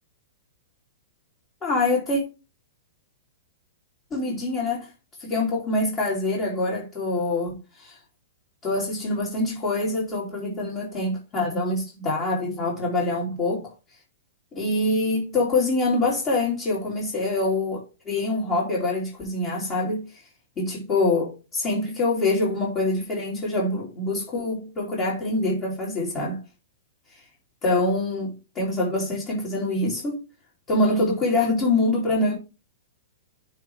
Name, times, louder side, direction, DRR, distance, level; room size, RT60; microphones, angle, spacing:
voice 1, 1.6-2.2 4.1-4.9 5.2-8.0 8.6-13.7 14.5-20.0 20.6-26.4 27.6-30.2 30.7-32.4, left 2 dB, 25° left, 3.1 m, -25 dB
9.6 x 3.4 x 4.8 m
hypercardioid pair, 145°, 0 cm